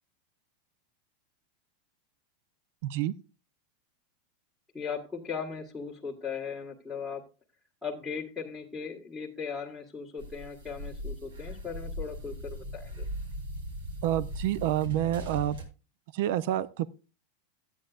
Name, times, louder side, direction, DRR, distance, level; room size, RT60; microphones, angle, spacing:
voice 1, 2.8-3.1 14.0-15.6 16.1-16.9, right 13 dB, 60° right, 17 dB, 0.5 m, -28 dB
voice 2, 4.7-7.2 7.8-13.0, left 6 dB, 5° left, -9 dB, 1.6 m, -38 dB
sound 1, 10.2-15.6, equal, 85° right, 3.1 m, -39 dB
12.5 x 9.0 x 2.4 m, 0.31 s
supercardioid pair, 150°, 0 cm